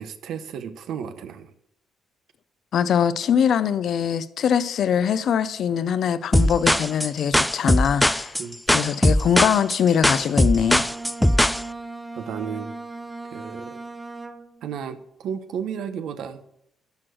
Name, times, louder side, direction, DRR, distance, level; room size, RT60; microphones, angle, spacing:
voice 1, 0.0-1.5 8.4-9.0 11.2-11.5 12.2-12.7 13.3-13.8 14.6-16.4, right 7 dB, 75° right, 0.7 m, -34 dB
voice 2, 2.7-8.3 8.7-10.9, left 8 dB, 65° left, 0.5 m, -22 dB
sound 1, 6.3-11.6, equal, 5° left, 0.3 m, -20 dB
Bowed string instrument, 10.5-14.8, right 3 dB, 15° right, 1.0 m, -38 dB
12.0 x 4.7 x 6.2 m
cardioid pair, 90°, 0 cm